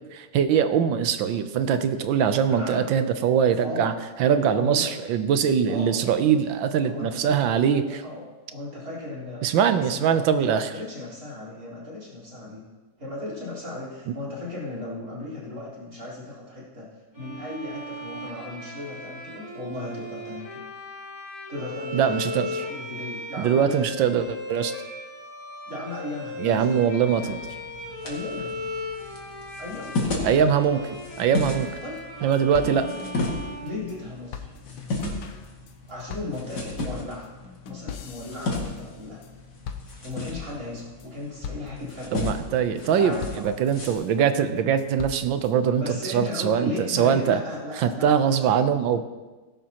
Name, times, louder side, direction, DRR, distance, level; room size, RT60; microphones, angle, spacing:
voice 1, 0.1-3.9 4.2-8.0 9.4-10.7 21.9-22.6 23.4-24.7 26.4-27.4 30.2-30.9 31.2-31.7 32.2-32.9 42.1-47.4 47.8-49.0, right 8 dB, 80° right, 10 dB, 1.5 m, -22 dB
voice 2, 2.5-2.9 3.6-4.0 4.5-5.0 5.7-6.0 6.8-12.6 13.0-16.9 17.2-20.6 21.5-24.0 25.7-27.3 28.0-28.6 29.6-30.0 31.8-32.0 32.6-32.8 33.6-34.5 35.9-37.3 37.6-39.2 40.0-42.1 43.0-43.4 45.8-48.5, left 2 dB, 50° right, -7 dB, 4.5 m, -36 dB
Bowed string instrument, 17.1-34.4, left 2 dB, 10° right, 4.0 m, -37 dB
sound 1, 27.1-43.9, left 2 dB, 60° left, 2.6 m, -35 dB
sound 2, 31.7-31.8 32.0-32.1 32.3-34.0 34.3-39.3 39.6-40.4 40.8-41.1 41.4-41.9 42.3-42.8 43.2-44.1 44.6-45.5, left 7 dB, 80° left, 1.6 m, -41 dB
17.5 x 11.0 x 2.9 m, 1.2 s
omnidirectional pair, 2.0 m